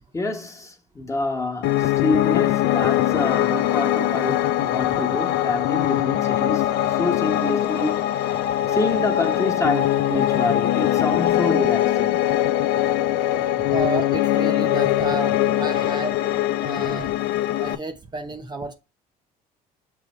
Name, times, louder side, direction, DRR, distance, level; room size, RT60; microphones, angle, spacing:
voice 1, 0.1-8.4 8.7-12.2, left 2 dB, 15° left, 1.3 m, -27 dB
Piano, 1.6-17.7, left 13 dB, 85° left, 0.5 m, -22 dB
voice 2, 13.6-16.2 16.6-17.2 17.6-18.7, right 2 dB, 25° right, 0.7 m, -31 dB
6.6 x 3.4 x 4.2 m
cardioid pair, 110°, 17 cm